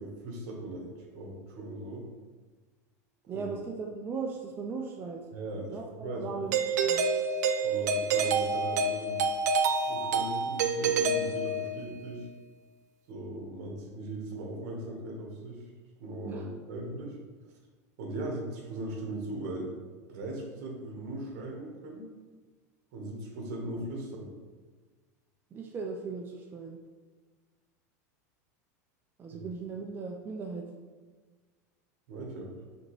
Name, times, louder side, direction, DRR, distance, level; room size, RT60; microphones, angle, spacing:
voice 1, 0.0-2.1 3.3-3.5 5.3-6.4 7.6-9.3 9.8-12.3 13.1-15.6 16.0-17.2 18.0-22.1 22.9-24.3 29.3-29.4 32.1-32.6, right 1 dB, 65° right, 0 dB, 1.2 m, -39 dB
voice 2, 3.3-5.3 5.7-7.1 16.2-16.5 25.5-26.8 29.2-30.7, right 4 dB, 25° right, 1 dB, 0.4 m, -38 dB
Doorbell, 6.5-11.9, right 4 dB, 85° right, 0.4 m, -28 dB
5.1 x 2.9 x 3.1 m, 1.4 s
supercardioid pair, 120°, 9 cm